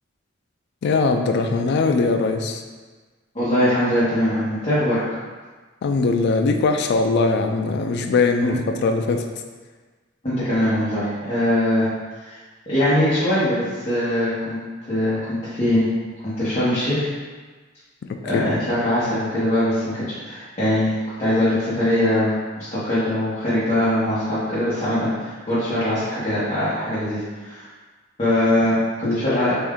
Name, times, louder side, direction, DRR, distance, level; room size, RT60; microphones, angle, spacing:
voice 1, 0.8-2.6 5.8-9.3 18.1-18.6 29.0-29.5, left 3 dB, 60° left, 5 dB, 0.3 m, -21 dB
voice 2, 3.3-5.0 8.4-8.6 10.2-11.9 12.2-12.4 12.7-14.6 14.9-15.8 16.2-17.1 18.2-27.7 28.2-29.5, left 1 dB, 30° left, -13 dB, 1.1 m, -22 dB
3.5 x 2.6 x 3.6 m, 1.4 s
head